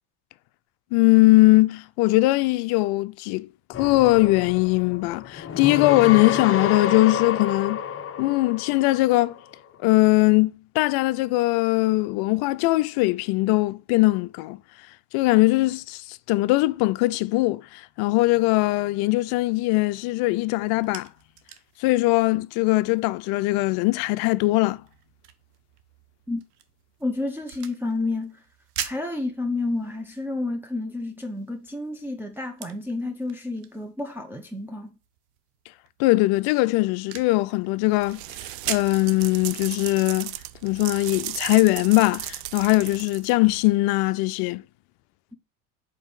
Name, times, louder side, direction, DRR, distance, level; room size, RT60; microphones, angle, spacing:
voice 1, 0.9-3.5 3.8-7.8 8.2-9.4 9.8-14.6 15.1-21.1 21.8-24.8 36.0-38.2 38.7-40.3 40.6-44.6, left 20 dB, 55° left, 0.5 m, -21 dB
sound 1, 3.7-9.4, left 8 dB, 30° left, 0.8 m, -29 dB
sound 2, 20.5-39.0, right 10 dB, 85° right, 1.0 m, -43 dB
voice 2, 27.0-28.4 28.8-34.9, left 2 dB, 5° right, 0.9 m, -30 dB
sound 3, 38.0-43.6, right 16 dB, 60° right, 0.6 m, -36 dB
5.3 x 4.1 x 5.3 m
hypercardioid pair, 90°, 46 cm